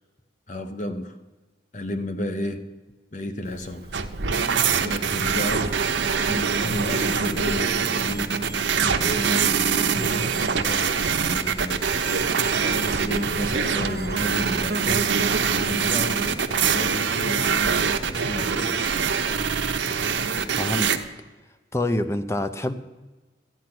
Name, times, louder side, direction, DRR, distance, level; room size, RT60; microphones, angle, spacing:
voice 1, 0.5-1.2 1.7-2.7 3.1-3.9 4.6-5.7 6.1-8.4 8.9-11.9 12.4-19.0, left 1 dB, 40° left, 8 dB, 0.8 m, -33 dB
Insect, 3.4-18.6, right 3 dB, 55° right, 0.5 m, -34 dB
sound 1, 3.9-21.0, right 6 dB, 75° right, 0.9 m, -24 dB
sound 2, 5.4-15.6, right 5 dB, 15° right, 0.8 m, -44 dB
voice 2, 20.6-21.0 21.7-22.7, left 1 dB, 15° left, 10 dB, 0.6 m, -26 dB
13.5 x 9.2 x 6.0 m, 1.2 s
head